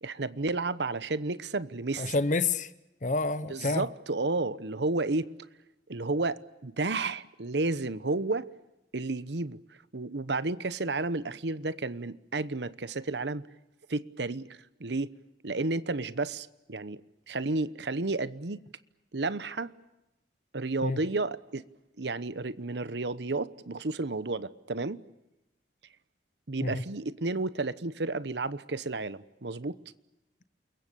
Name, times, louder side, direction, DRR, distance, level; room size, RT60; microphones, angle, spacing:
voice 1, 0.0-2.1 3.5-5.3 5.9-8.5 8.9-9.6 9.9-13.4 13.9-14.5 14.8-15.1 15.4-17.0 17.3-18.6 19.1-19.7 20.5-21.6 22.0-25.0 26.5-29.8, right 3 dB, 75° right, 1.0 m, -32 dB
voice 2, 2.0-2.7 3.0-3.8 20.8-21.0 26.6-26.8, left 3 dB, 45° left, 0.9 m, -28 dB
29.0 x 22.5 x 6.9 m
head